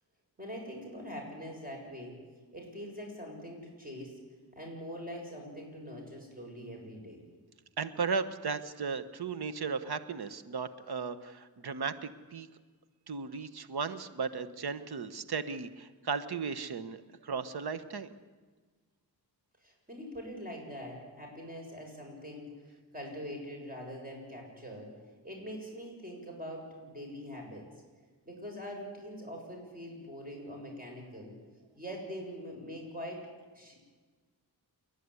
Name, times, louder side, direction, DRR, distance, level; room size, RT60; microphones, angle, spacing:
voice 1, 0.4-2.1 2.5-4.2 4.5-7.2 19.6-24.9 25.2-27.7 28.2-31.3 31.7-33.3 33.5-33.8, equal, 20° right, 0 dB, 6.9 m, -43 dB
voice 2, 7.8-12.5 13.1-17.0 17.2-18.1, right 5 dB, 70° right, 13 dB, 1.3 m, -36 dB
28.5 x 11.5 x 9.9 m, 1.4 s
wide cardioid pair, 85°, 40 cm